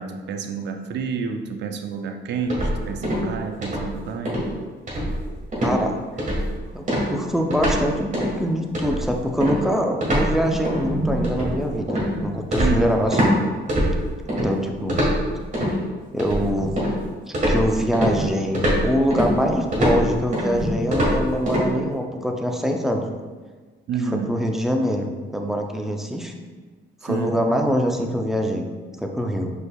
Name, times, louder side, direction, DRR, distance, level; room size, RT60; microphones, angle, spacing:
voice 1, 0.0-4.5 12.6-12.9 23.9-24.4 27.0-27.4, right 5 dB, 60° right, 6 dB, 0.5 m, -29 dB
sound 1, 2.5-3.3 3.6-3.9 4.3-4.5 4.9-5.3 5.5-5.8 6.2-6.5 6.9-7.8 8.1-8.4 8.7-13.3 13.7-14.5 14.9-15.7 16.2-17.0 17.3-21.7, equal, 40° right, 1.4 m, -23 dB
voice 2, 5.6-5.9 6.7-13.3 14.3-15.0 16.1-16.8 17.3-23.0 24.1-26.3 27.0-28.6 29.0-29.5, equal, ahead, 2 dB, 0.5 m, -24 dB
5.2 x 4.0 x 2.3 m, 1.4 s
cardioid pair, 90°, 20 cm